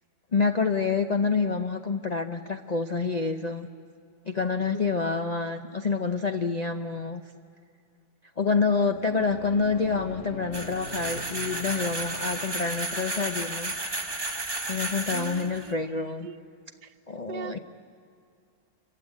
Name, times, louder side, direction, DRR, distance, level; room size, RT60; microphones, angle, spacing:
voice 1, 0.3-3.7 4.3-7.2 8.4-13.7 14.7-16.3 17.1-17.6, left 4 dB, 65° left, 6 dB, 0.4 m, -27 dB
sound 1, 8.7-13.3, left 1 dB, 45° left, 3.6 m, -43 dB
sound 2, 10.5-15.7, right 2 dB, 15° right, 1.2 m, -33 dB
voice 2, 15.1-16.4 16.8-16.9 17.3-17.6, right 9 dB, 75° right, 12 dB, 1.3 m, -40 dB
26.5 x 15.5 x 9.7 m, 2.4 s
omnidirectional pair, 1.8 m